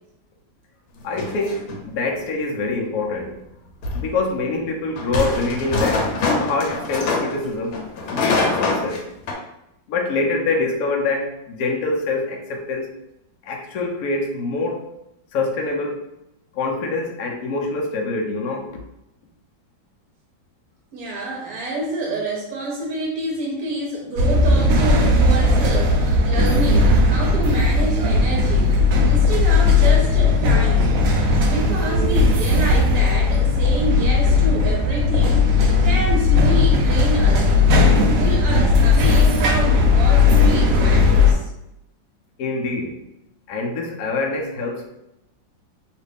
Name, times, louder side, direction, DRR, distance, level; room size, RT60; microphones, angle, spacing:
sound 1, 1.0-1.8 3.8-4.1 5.0-7.4 7.7-9.0 9.3-9.4, left 3 dB, 85° left, 1.4 m, -24 dB
voice 1, 1.0-3.3 3.9-6.1 6.4-7.8 8.1-9.0 9.3-9.4 9.9-12.9 13.4-14.8 15.3-16.1 16.5-18.7 42.4-43.0 43.5-44.9, left 3 dB, 70° left, 1 dB, 0.9 m, -25 dB
voice 2, 20.9-28.7 29.0-30.9 31.4-37.5 37.7-41.4, right 2 dB, 65° right, -1 dB, 1.0 m, -28 dB
sound 2, 24.2-41.3, left 3 dB, 80° right, 0.7 m, -16 dB
3.1 x 2.5 x 3.3 m, 0.85 s
omnidirectional pair, 2.0 m